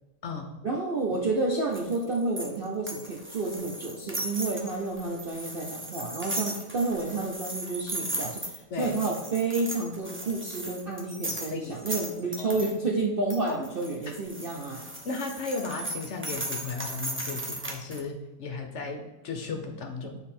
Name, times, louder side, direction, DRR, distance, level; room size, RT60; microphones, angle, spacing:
voice 1, 0.6-14.8, right 3 dB, 50° right, -1 dB, 0.7 m, -30 dB
sound 1, 1.7-12.7 13.3-18.0, right 1 dB, 10° right, 0.6 m, -37 dB
voice 2, 15.0-20.2, left 4 dB, 55° left, 4 dB, 0.9 m, -35 dB
7.4 x 4.0 x 4.3 m, 1.1 s
omnidirectional pair, 1.7 m